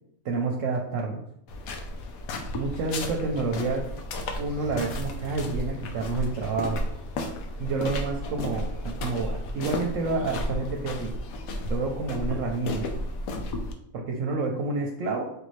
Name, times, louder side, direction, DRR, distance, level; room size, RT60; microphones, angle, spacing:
voice 1, 0.2-1.2 2.5-3.8 4.4-6.8 7.6-11.1 11.7-12.9 13.9-15.2, right 3 dB, 70° right, 1 dB, 0.9 m, -29 dB
sound 1, 1.5-13.7, left 1 dB, 85° left, 1.0 m, -33 dB
5.1 x 2.6 x 3.1 m, 0.75 s
omnidirectional pair, 1.5 m